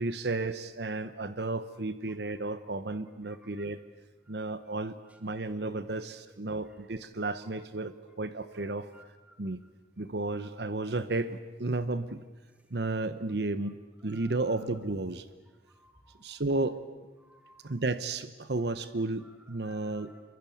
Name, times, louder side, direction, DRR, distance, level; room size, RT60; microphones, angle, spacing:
voice 1, 0.0-3.8 4.3-8.9 9.4-9.6 10.0-12.2 12.7-13.8 14.0-15.3 16.2-16.8 17.6-20.1, right 2 dB, 65° right, 12 dB, 1.0 m, -33 dB
voice 2, 8.9-9.4 14.0-14.3 15.7-16.2 17.2-17.7 19.2-19.3 19.6-20.2, right 1 dB, 10° right, 5 dB, 2.8 m, -58 dB
27.5 x 23.5 x 8.6 m, 1.2 s
head